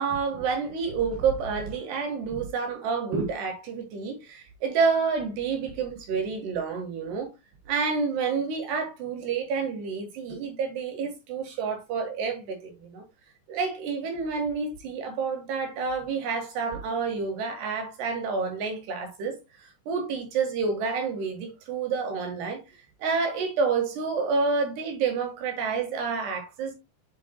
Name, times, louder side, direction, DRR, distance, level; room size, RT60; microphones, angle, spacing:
voice 1, 0.0-7.3 7.7-13.0 13.5-22.6 23.0-26.7, right 5 dB, 65° right, 3.1 m, -29 dB
8.1 x 7.9 x 2.2 m
omnidirectional pair, 5.9 m